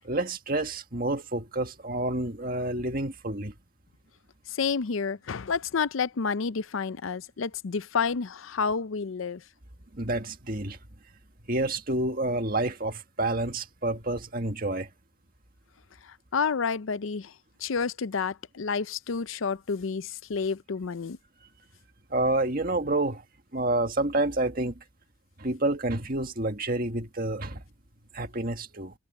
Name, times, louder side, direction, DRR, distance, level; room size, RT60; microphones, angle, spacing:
voice 1, 0.0-3.5 9.9-10.8 11.5-14.9 22.1-23.2 23.5-24.8 25.4-27.6 28.1-28.9, right 2 dB, 45° right, 1.8 m, -29 dB
voice 2, 4.6-9.4 16.3-17.3 17.6-21.2, left 5 dB, 75° left, 0.6 m, -29 dB
head